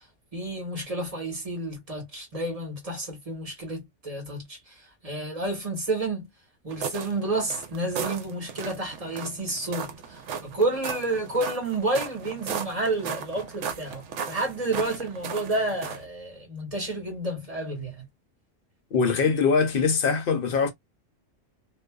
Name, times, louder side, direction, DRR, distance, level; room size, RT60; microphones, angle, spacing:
voice 1, 0.3-6.3 6.6-18.1, right 2 dB, 30° right, 1.2 m, -30 dB
sound 1, 6.7-16.1, right 7 dB, 80° right, 0.9 m, -36 dB
voice 2, 18.9-20.7, left 5 dB, 60° left, 0.7 m, -22 dB
2.4 x 2.2 x 2.2 m
omnidirectional pair, 1.2 m